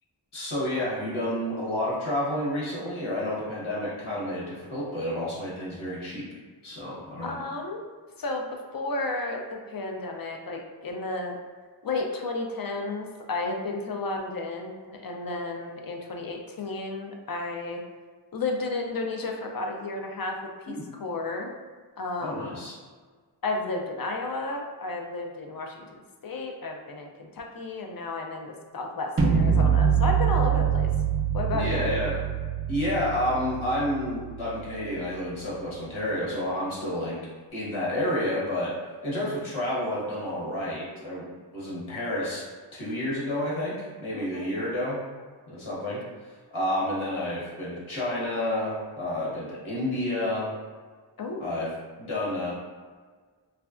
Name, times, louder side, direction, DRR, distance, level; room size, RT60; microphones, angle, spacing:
voice 1, 0.3-6.2 6.6-7.3 20.7-20.8 22.2-22.7 31.5-32.2 32.7-37.2 37.5-38.7 39.0-41.3 41.5-42.4 42.7-43.7 44.0-45.0 45.5-50.5 51.4-51.7 52.0-52.5, left 1 dB, 80° left, -6 dB, 1.1 m, -30 dB
voice 2, 7.2-7.8 8.2-11.4 11.8-17.8 18.3-21.5 22.0-22.5 23.4-25.9 26.2-30.9 31.3-31.9 44.1-44.5 51.2-51.5, left 3 dB, 50° left, 2 dB, 0.5 m, -32 dB
sound 1, 29.2-35.2, right 7 dB, 30° right, 0.4 m, -25 dB
3.2 x 2.3 x 2.4 m, 1.5 s
wide cardioid pair, 55°, 47 cm